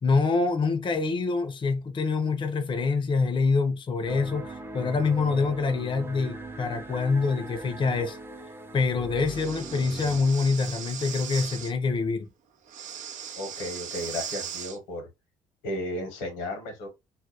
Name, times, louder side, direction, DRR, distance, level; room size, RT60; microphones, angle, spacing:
voice 1, 0.0-8.2 8.7-12.3, left 4 dB, 35° left, 0.6 m, -26 dB
sound 1, 4.1-10.2, right 2 dB, 15° right, 0.6 m, -40 dB
Breathing, 9.2-11.7 12.7-14.8, right 8 dB, 60° right, 0.5 m, -38 dB
voice 2, 13.4-15.1 15.6-16.9, left 1 dB, 85° left, 0.9 m, -34 dB
2.3 x 2.1 x 2.8 m
hypercardioid pair, 60°, 15 cm